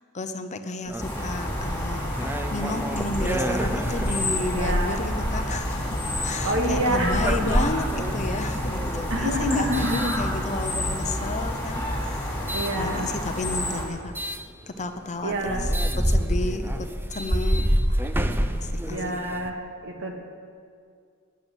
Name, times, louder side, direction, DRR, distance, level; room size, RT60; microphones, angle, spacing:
voice 1, 0.1-14.1 14.7-15.7 16.0-18.0 18.5-19.0, left 2 dB, 35° left, 7 dB, 0.8 m, -32 dB
sound 1, 0.9-10.9 11.5-12.8 14.1-14.4 15.0-15.1 15.3-19.5, equal, 10° right, 0.6 m, -28 dB
sound 2, 1.0-13.9, left 1 dB, 10° left, 3.5 m, -29 dB
voice 2, 4.5-5.0 6.4-7.5 9.1-10.1 12.5-13.1 15.2-15.7 18.9-19.5 19.8-20.1, right 1 dB, 60° right, 1 dB, 2.2 m, -27 dB
12.0 x 10.5 x 8.3 m, 2.2 s
head